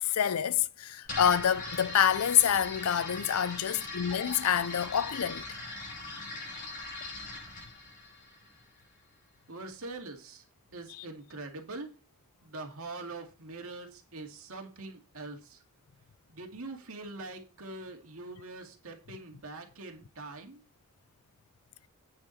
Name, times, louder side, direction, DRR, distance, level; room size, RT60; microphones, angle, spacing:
voice 1, 0.0-5.5 10.9-11.0, left 9 dB, 80° left, 0.5 m, -27 dB
sound 1, 1.0-8.9, left 2 dB, 40° left, 5.6 m, -41 dB
voice 2, 9.5-10.4 10.7-11.9 12.4-15.6 16.3-20.6, right 2 dB, 70° right, 2.2 m, -43 dB
8.9 x 7.2 x 4.1 m
head